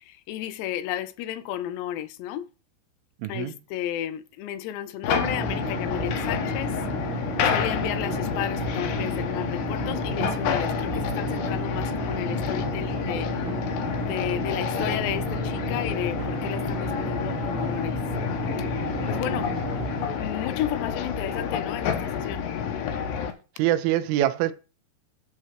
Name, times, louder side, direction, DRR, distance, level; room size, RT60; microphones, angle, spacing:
voice 1, 0.0-2.5 3.3-13.3 14.0-18.0 18.6-19.5 20.1-22.5, left 11 dB, 85° left, 2.9 m, -33 dB
voice 2, 3.2-3.5 23.6-24.5, right 13 dB, 80° right, 2.3 m, -24 dB
sound 1, 5.0-23.3, left 7 dB, 65° left, 2.5 m, -29 dB
sound 2, 5.2-20.1, right 2 dB, 55° right, 2.8 m, -33 dB
10.5 x 4.5 x 5.8 m
omnidirectional pair, 4.9 m